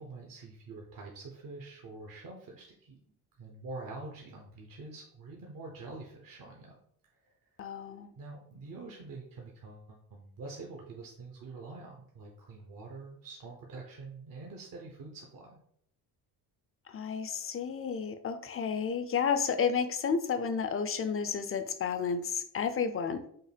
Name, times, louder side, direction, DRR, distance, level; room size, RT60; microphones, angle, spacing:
voice 1, 0.0-6.8 7.2-7.3 8.1-15.6, right 3 dB, 50° right, 0 dB, 0.9 m, -46 dB
voice 2, 7.6-8.1 16.9-23.2, left 6 dB, 30° left, 10 dB, 0.5 m, -31 dB
5.5 x 2.1 x 3.4 m, 0.69 s
supercardioid pair, 65°, 43 cm